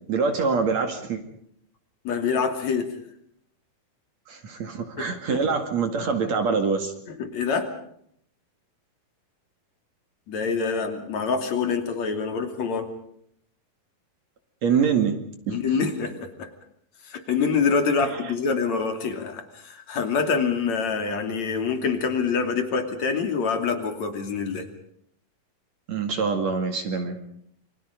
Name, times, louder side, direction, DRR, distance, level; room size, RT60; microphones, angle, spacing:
voice 1, 0.1-1.2 4.3-6.9 14.6-15.2 15.5-15.6 25.9-27.2, right 5 dB, 50° right, 6 dB, 3.1 m, -24 dB
voice 2, 2.0-3.0 5.0-5.4 7.1-7.7 10.3-12.9 15.5-16.5 17.1-24.7, left 5 dB, 50° left, 7 dB, 3.8 m, -26 dB
28.5 x 25.0 x 5.2 m, 0.68 s
omnidirectional pair, 4.3 m